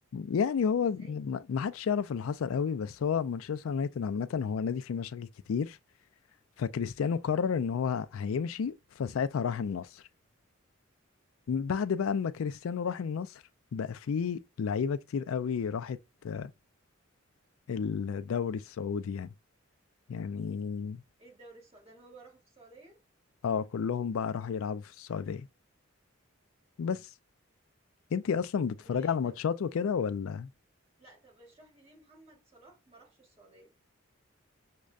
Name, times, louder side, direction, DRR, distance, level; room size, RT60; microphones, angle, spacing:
voice 1, 0.1-5.8 6.6-10.0 11.5-13.4 13.7-16.0 16.2-16.5 17.7-19.3 20.1-21.0 23.4-25.5 26.8-27.1 28.1-30.5, left 6 dB, 85° left, 0.4 m, -31 dB
voice 2, 21.2-23.0 28.8-29.4 31.0-33.7, right 2 dB, 30° right, 1.6 m, -56 dB
6.2 x 2.2 x 2.4 m
head